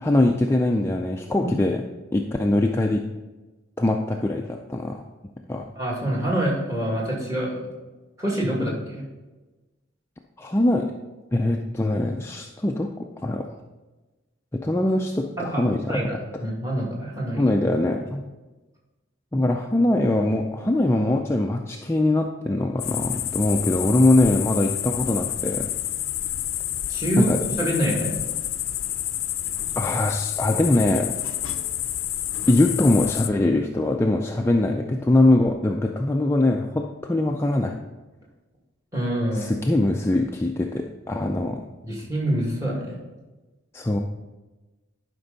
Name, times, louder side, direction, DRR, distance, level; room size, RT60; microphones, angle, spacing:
voice 1, 0.0-1.8 2.1-3.0 3.8-5.0 5.5-5.6 10.4-10.9 11.3-13.5 14.5-16.0 17.4-18.2 19.3-25.7 27.2-27.4 29.8-31.1 32.5-37.7 39.3-41.6 43.7-44.0, left 1 dB, 15° left, 2 dB, 0.3 m, -22 dB
voice 2, 5.8-7.6 8.2-9.0 15.4-17.5 26.9-27.3 27.6-28.2 38.9-39.5 41.8-43.0, right 1 dB, 15° right, -4 dB, 2.2 m, -26 dB
sound 1, 22.8-33.3, left 12 dB, 80° left, 0.5 m, -29 dB
11.5 x 5.3 x 4.0 m, 1.2 s
head